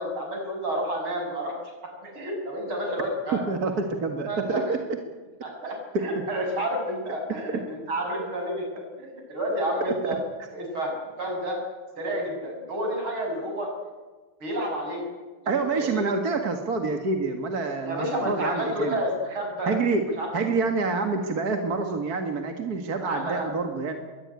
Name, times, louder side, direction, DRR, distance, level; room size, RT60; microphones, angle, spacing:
voice 1, 0.0-1.5 2.0-3.4 4.2-4.8 5.4-8.6 9.0-10.2 10.5-11.6 12.0-13.7 14.4-15.1 15.4-16.0 17.8-19.7 20.2-20.3 23.0-23.5, equal, 70° right, 1 dB, 7.8 m, -30 dB
voice 2, 3.5-4.8 5.9-6.0 15.5-18.9 19.7-20.0 20.3-23.9, right 4 dB, 45° right, 5 dB, 2.2 m, -27 dB
22.5 x 18.0 x 9.6 m, 1.3 s
omnidirectional pair, 2.4 m